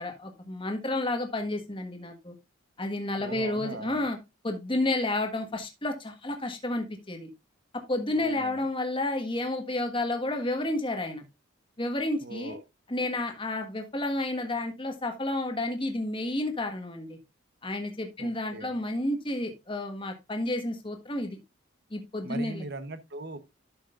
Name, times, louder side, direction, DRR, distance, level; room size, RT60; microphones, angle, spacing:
voice 1, 0.0-2.3 2.8-4.2 4.4-7.3 7.9-11.2 11.8-12.6 12.9-17.2 17.6-21.4 21.9-22.6, left 2 dB, 25° left, 1.5 m, -31 dB
voice 2, 3.2-4.1 8.1-8.6 12.2-12.6 18.2-18.7 22.2-23.4, right 2 dB, 50° right, 1.0 m, -40 dB
12.0 x 6.4 x 2.5 m
head